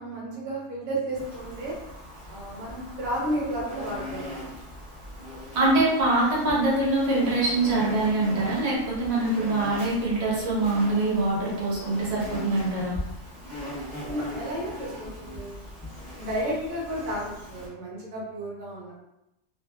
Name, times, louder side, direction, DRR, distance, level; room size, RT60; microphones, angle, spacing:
voice 1, 0.0-1.8 2.3-4.5 14.0-15.7 16.2-18.9, right 1 dB, 70° right, -4 dB, 1.1 m, -32 dB
Insect, 1.1-17.7, equal, 15° right, 1.0 m, -39 dB
voice 2, 5.5-13.0, right 2 dB, 40° right, -6 dB, 0.6 m, -24 dB
2.6 x 2.3 x 2.2 m, 0.90 s
omnidirectional pair, 1.6 m